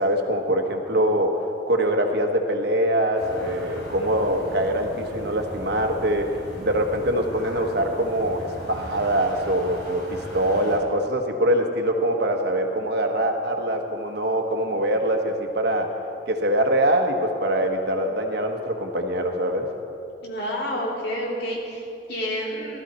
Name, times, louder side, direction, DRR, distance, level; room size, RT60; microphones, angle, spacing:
voice 1, 0.0-1.3 1.7-6.3 6.6-15.9 16.3-19.7, right 1 dB, 65° right, 4 dB, 1.3 m, -23 dB
sound 1, 3.1-10.8, equal, 80° left, 3.4 m, -38 dB
voice 2, 20.2-22.8, equal, 60° left, -3 dB, 2.9 m, -29 dB
15.0 x 13.0 x 4.4 m, 2.7 s
head